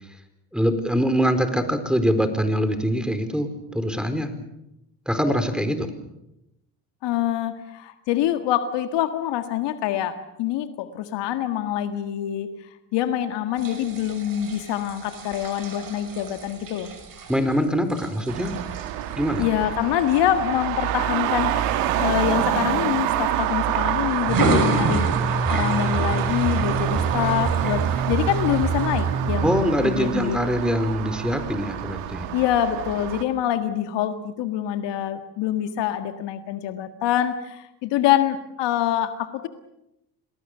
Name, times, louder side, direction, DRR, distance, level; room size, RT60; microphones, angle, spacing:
voice 1, 0.5-4.3 5.1-5.9 17.3-18.6 19.2-19.5 29.4-32.2, equal, ahead, 9 dB, 4.5 m, -23 dB
voice 2, 7.0-12.5 12.9-16.9 19.4-30.4 32.3-39.5, left 11 dB, 65° left, 9 dB, 1.8 m, -25 dB
sound 1, 13.6-21.4 21.9-22.2 22.5-23.6 24.2-29.0, right 3 dB, 45° right, 5.9 m, -32 dB
Traffic noise roadway noise, 18.3-33.2, right 12 dB, 80° right, 2.0 m, -27 dB
sound 2, 24.3-29.6, right 4 dB, 25° right, 3.0 m, -26 dB
28.0 x 19.5 x 6.8 m, 0.87 s
hypercardioid pair, 65°, 45 cm